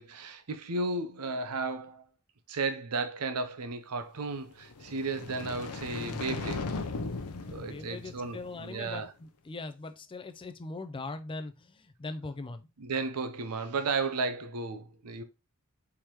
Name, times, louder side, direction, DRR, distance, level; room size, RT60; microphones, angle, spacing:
voice 1, 0.0-2.0 2.5-6.7 7.5-9.1 12.8-15.2, right 3 dB, 85° right, 0.7 m, -34 dB
sound 1, 4.6-8.9, left 3 dB, 85° left, 0.7 m, -38 dB
voice 2, 7.5-12.7, left 3 dB, 25° left, 0.4 m, -41 dB
4.7 x 3.6 x 2.9 m
head